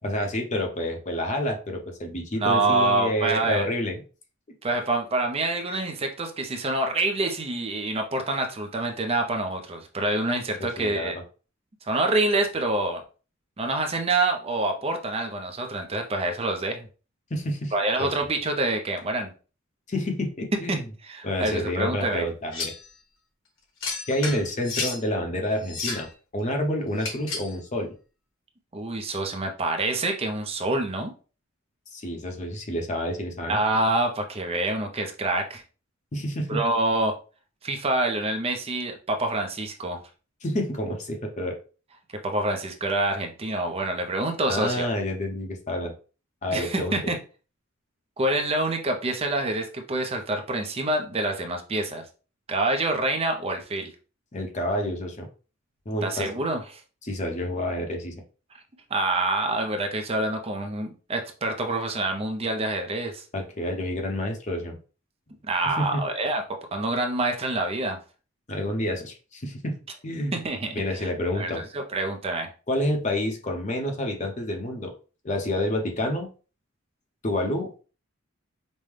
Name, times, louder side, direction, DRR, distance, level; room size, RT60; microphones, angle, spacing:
voice 1, 0.0-4.0 10.6-11.1 17.3-17.7 18.0-18.1 19.9-20.8 21.2-22.7 24.1-26.1 26.3-27.9 31.9-33.6 36.1-36.6 40.4-41.6 44.5-45.9 46.4-47.0 54.3-55.3 55.9-56.3 57.0-58.1 63.3-64.8 65.6-66.0 68.5-69.8 70.0-70.3 70.8-71.6 72.7-74.9 75.2-76.3 77.2-77.8, left 1 dB, 35° left, 3 dB, 0.8 m, -28 dB
voice 2, 2.4-3.7 4.6-11.2 11.8-13.0 13.6-16.9 17.7-19.3 20.7-22.3 28.7-31.1 33.5-35.6 36.5-37.1 37.6-40.0 42.2-44.9 46.5-47.2 48.2-52.0 52.5-53.9 56.0-56.8 58.9-63.2 65.4-66.4 66.7-68.0 70.3-71.1 71.3-72.5, right 2 dB, 30° right, 4 dB, 0.6 m, -26 dB
sound 1, 22.5-22.9 23.8-25.0 25.6-26.1 27.0-27.6, left 4 dB, 65° left, 1.3 m, -32 dB
5.3 x 2.1 x 3.2 m, 0.35 s
head